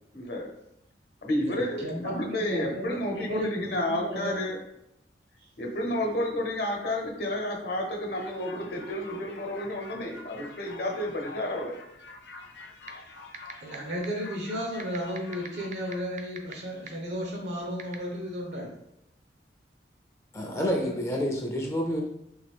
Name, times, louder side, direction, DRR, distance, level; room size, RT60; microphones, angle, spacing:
voice 1, 0.1-0.5 1.2-4.6 5.6-11.7, left 1 dB, 60° left, 0 dB, 0.9 m, -31 dB
voice 2, 1.4-4.3 13.6-18.8 20.4-21.0, equal, 80° right, 0 dB, 1.0 m, -34 dB
sound 1, 8.2-16.0, left 3 dB, 75° left, 0.6 m, -47 dB
sound 2, 12.9-13.0 13.3-13.8 14.0-14.1 14.8-16.5 16.9-17.0 17.8-18.0, right 7 dB, 45° right, 0.4 m, -38 dB
voice 3, 20.3-22.0, equal, 15° left, 1 dB, 0.5 m, -28 dB
3.8 x 3.1 x 3.5 m, 0.81 s
head